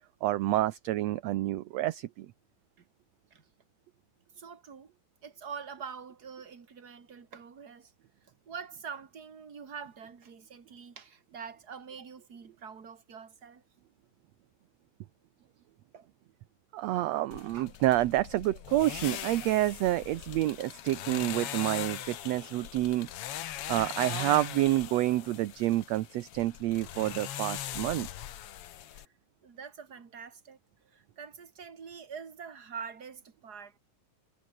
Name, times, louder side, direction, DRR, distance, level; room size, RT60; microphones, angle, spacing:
voice 1, 0.2-2.3 16.7-23.1 23.7-28.1, right 15 dB, 70° right, 1.7 m, -28 dB
voice 2, 4.4-4.9 5.2-7.9 8.2-13.6 15.9-16.1 17.5-17.7 28.9-29.1 29.4-33.8, right 6 dB, 30° right, 2.7 m, -45 dB
sound 1, 17.3-29.1, left 12 dB, 60° left, 1.7 m, -40 dB
omnidirectional pair, 3.7 m